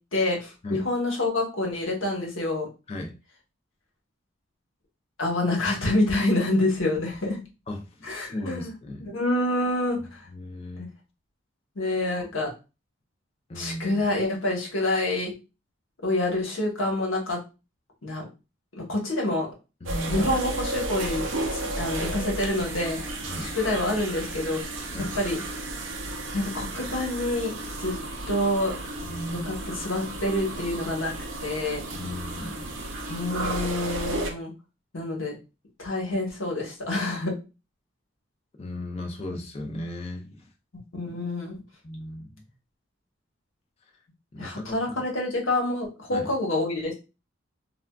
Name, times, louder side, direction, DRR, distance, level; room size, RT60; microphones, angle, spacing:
voice 1, 0.1-2.7 5.2-7.4 8.0-8.7 9.0-10.1 10.8-10.9 11.8-12.5 13.6-15.3 16.0-17.4 18.0-18.3 18.8-19.5 20.1-23.0 23.4-24.6 25.1-25.4 26.3-28.0 28.3-28.7 29.3-31.1 31.4-31.8 33.1-34.5 34.9-35.3 35.8-37.3 40.9-41.6 44.4-46.9, left 2 dB, 75° left, 0 dB, 1.0 m, -27 dB
voice 2, 7.7-9.1 10.3-10.9 12.2-12.3 13.5-14.0 19.8-20.3 23.2-23.5 24.9-25.2 29.0-29.5 31.9-32.8 38.6-40.5 41.8-42.3 44.3-45.0 46.1-46.3, left 1 dB, 30° left, 2 dB, 0.4 m, -36 dB
sound 1, 19.9-34.3, right 2 dB, 70° right, 0.5 m, -33 dB
3.4 x 2.3 x 2.2 m, 0.29 s
head